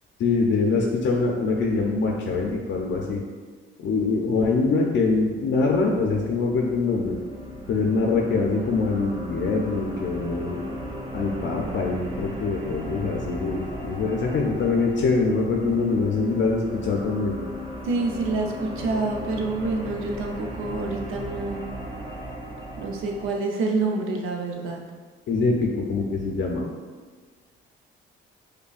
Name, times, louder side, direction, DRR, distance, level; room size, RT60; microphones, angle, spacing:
voice 1, 0.2-3.2 3.8-7.2 7.7-10.6 11.1-17.3 25.3-26.7, left 3 dB, 60° left, 0 dB, 0.5 m, -24 dB
sound 1, 6.3-23.3, equal, 25° right, 0.7 m, -36 dB
voice 2, 17.8-21.7 22.8-24.8, right 3 dB, 75° right, 1 dB, 0.6 m, -27 dB
5.2 x 2.2 x 2.4 m, 1.5 s
cardioid pair, 85°, 21 cm